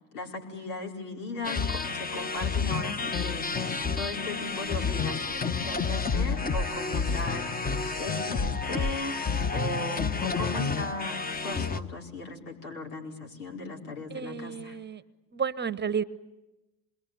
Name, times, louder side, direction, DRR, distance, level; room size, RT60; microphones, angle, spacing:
voice 1, 0.1-3.4 3.9-7.5 8.0-9.1 9.5-14.8, left 2 dB, 85° left, 1 dB, 4.8 m, -37 dB
sound 1, 1.4-11.8, left 4 dB, 20° left, 1.3 m, -30 dB
voice 2, 14.1-15.0 15.3-16.0, right 6 dB, 25° right, 16 dB, 1.1 m, -31 dB
27.0 x 22.5 x 9.4 m, 1.0 s
hypercardioid pair, 80°, 44 cm